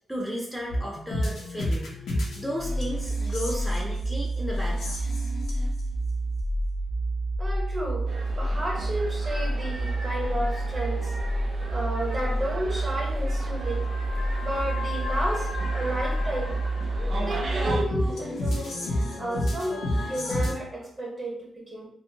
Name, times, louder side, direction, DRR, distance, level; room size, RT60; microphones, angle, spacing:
voice 1, 0.1-1.9 2.3-5.0, equal, 5° left, -3 dB, 0.5 m, -34 dB
sound 1, 0.7-20.5, right 1 dB, 80° left, 0.6 m, -28 dB
voice 2, 7.4-11.1 11.7-13.8 14.4-16.5 17.2-18.8 19.2-21.9, right 1 dB, 30° right, -2 dB, 0.8 m, -32 dB
sound 2, 8.1-17.8, right 2 dB, 70° right, 0.5 m, -39 dB
2.6 x 2.0 x 2.7 m, 0.70 s
cardioid pair, 80°, 0 cm